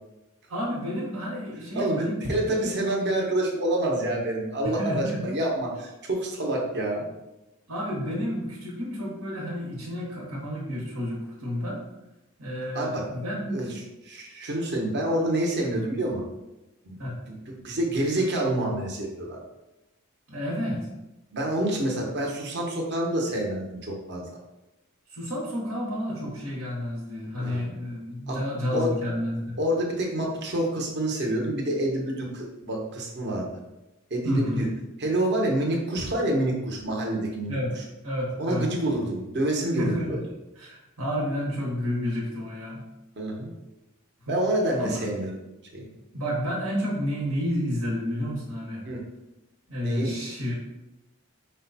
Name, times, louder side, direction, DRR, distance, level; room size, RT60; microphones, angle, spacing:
voice 1, 0.5-2.2 2.5-2.8 4.6-5.2 7.7-11.8 12.4-13.7 17.0-17.1 20.3-20.8 25.1-29.6 34.2-34.6 37.5-37.7 38.0-38.7 39.6-40.2 40.5-42.8 44.3-44.4 44.8-45.1 46.1-48.8 49.7-50.5, equal, 85° right, -5 dB, 1.3 m, -30 dB
voice 2, 1.7-7.0 12.7-13.0 13.5-13.7 14.0-16.2 16.8-16.9 17.3-19.4 21.3-24.2 27.4-27.6 28.3-28.4 28.7-29.0 29.6-33.5 34.1-34.7 35.0-37.8 38.4-40.2 43.2-43.5 44.3-45.3 45.7-45.9 48.8-49.0 49.8-50.1, right 1 dB, 55° right, -1 dB, 0.9 m, -27 dB
5.1 x 2.2 x 4.0 m, 0.98 s
head